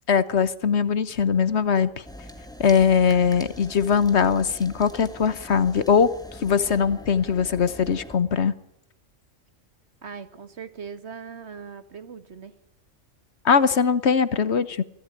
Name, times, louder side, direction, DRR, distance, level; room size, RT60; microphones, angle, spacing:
voice 1, 0.1-2.0 2.6-6.1 6.4-8.5 13.4-14.8, left 6 dB, 65° left, 15 dB, 1.3 m, -21 dB
sound 1, 2.0-8.2, equal, 5° left, 2.0 m, -43 dB
voice 2, 10.0-12.5, right 6 dB, 65° right, 11 dB, 1.8 m, -40 dB
23.5 x 15.5 x 9.9 m, 0.86 s
omnidirectional pair, 1.2 m